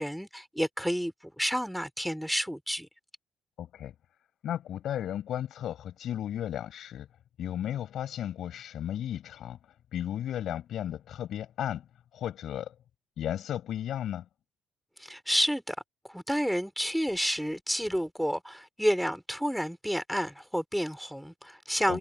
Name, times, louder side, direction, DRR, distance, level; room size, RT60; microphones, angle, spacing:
voice 1, 0.0-2.9 15.0-15.8 16.1-22.0, equal, ahead, 3.3 m, -30 dB
voice 2, 3.6-3.9 4.4-7.1 7.4-9.6 9.9-11.9 12.1-12.7 13.2-14.2 21.9-22.0, left 11 dB, 70° left, 6.0 m, -34 dB
cardioid pair, 90°, 0 cm